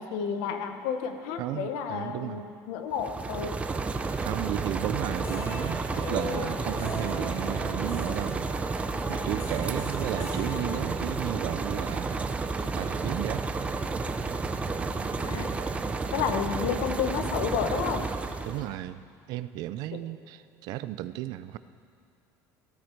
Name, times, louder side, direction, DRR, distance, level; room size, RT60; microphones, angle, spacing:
voice 1, 0.0-3.5 15.2-15.5 16.1-18.1 19.9-20.0, left 7 dB, 80° left, 7 dB, 1.2 m, -31 dB
voice 2, 1.4-2.4 4.2-8.5 9.1-12.2 12.7-13.4 18.4-21.6, right 14 dB, 60° right, 14 dB, 0.5 m, -34 dB
sound 1, 2.9-18.7, right 3 dB, 15° right, 0.6 m, -31 dB
sound 2, 5.1-11.4, left 4 dB, 35° left, 1.5 m, -40 dB
15.5 x 13.0 x 4.6 m, 2.3 s
cardioid pair, 145°, 7 cm